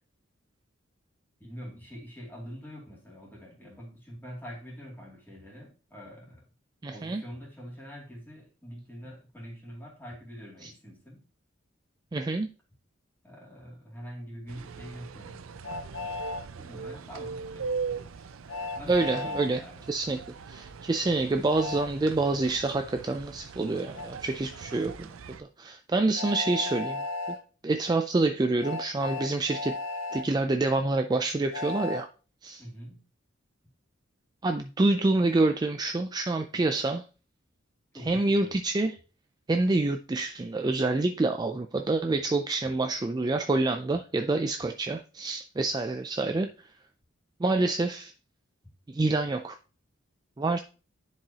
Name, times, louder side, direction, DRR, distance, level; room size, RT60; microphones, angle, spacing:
voice 1, 1.4-6.4 6.9-11.2 13.2-15.5 16.6-18.3 18.7-19.8 32.6-33.0 37.9-38.6, equal, 10° left, 2.4 m, -45 dB
voice 2, 6.8-7.2 10.6-10.7 12.1-12.5 18.9-19.6 19.9-20.2 20.5-25.1 25.4-27.1 27.6-29.8 30.1-32.1 32.4-32.6 34.4-37.0 38.0-39.0 39.5-46.5 47.4-48.1 48.9-49.6 50.4-50.6, right 2 dB, 20° right, 0.3 m, -27 dB
sound 1, 14.5-25.4, right 5 dB, 85° right, 0.5 m, -40 dB
Train, 15.6-16.4 18.5-19.5 21.6-21.9 23.9-24.1 26.1-27.4 28.6-30.2 31.5-32.0, left 2 dB, 65° left, 1.6 m, -34 dB
10.5 x 4.7 x 2.8 m
head